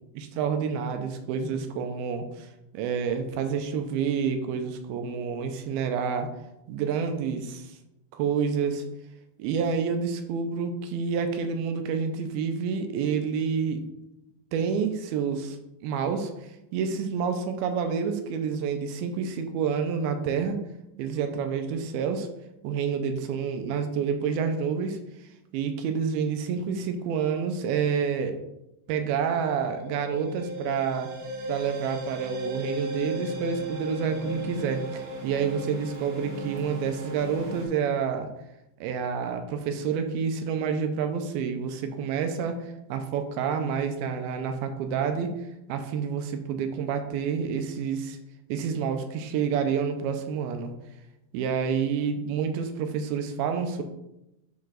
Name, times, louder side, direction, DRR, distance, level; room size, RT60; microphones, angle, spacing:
voice 1, 0.2-2.5 2.7-6.3 6.7-7.7 8.1-8.8 9.4-13.8 14.5-15.6 15.8-16.3 16.7-20.6 21.0-22.3 22.6-25.0 25.5-28.4 28.9-31.1 31.5-38.3 38.8-45.3 45.7-48.2 48.5-50.7 51.3-53.8, right 6 dB, 85° right, 7 dB, 2.5 m, -28 dB
sound 1, 28.9-37.7, right 1 dB, 70° right, 1.5 m, -36 dB
9.2 x 3.1 x 3.8 m, 0.88 s
omnidirectional pair, 4.4 m